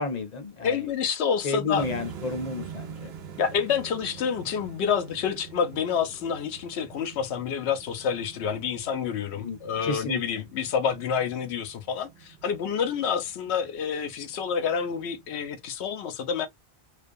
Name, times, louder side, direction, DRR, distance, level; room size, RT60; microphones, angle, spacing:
voice 1, 0.0-0.8 1.4-3.1 9.4-10.2, left 3 dB, 45° left, 0.7 m, -31 dB
voice 2, 0.6-1.9 3.4-16.5, left 7 dB, 80° left, 0.9 m, -28 dB
sound 1, 1.8-15.7, right 7 dB, 75° right, 0.8 m, -46 dB
2.4 x 2.2 x 2.5 m
omnidirectional pair, 1.1 m